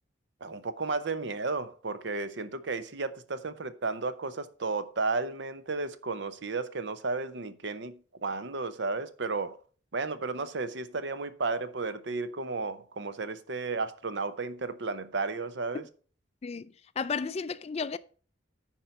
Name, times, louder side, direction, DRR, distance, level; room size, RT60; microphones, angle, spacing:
voice 1, 0.4-9.6 9.9-15.8, right 3 dB, 65° right, 0.7 m, -33 dB
voice 2, 16.4-18.0, left 5 dB, 35° left, 0.3 m, -33 dB
10.0 x 4.5 x 5.3 m
head